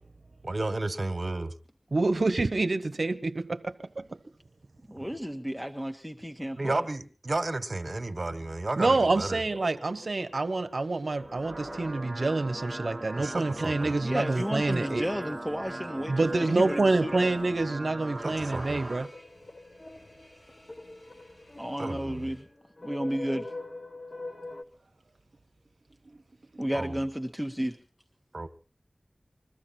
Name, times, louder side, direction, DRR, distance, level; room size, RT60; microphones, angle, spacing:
voice 1, 0.4-1.5 6.6-9.4 13.1-14.0 18.2-18.9 21.8-22.3 26.7-27.0 28.3-28.5, right 2 dB, 55° right, 1.5 m, -32 dB
voice 2, 1.9-4.1 8.8-15.1 16.1-19.1, right 3 dB, 75° right, 0.8 m, -27 dB
voice 3, 4.9-6.8 14.0-17.3 21.6-22.5 22.8-23.5 26.6-27.8, equal, 5° left, 1.2 m, -32 dB
sound 1, 7.7-24.6, left 2 dB, 45° left, 1.5 m, -47 dB
sound 2, 11.1-19.1, right 1 dB, 35° right, 1.0 m, -39 dB
sound 3, 16.4-22.4, left 1 dB, 75° left, 5.6 m, -59 dB
22.0 x 14.0 x 4.4 m
wide cardioid pair, 55°, 0 cm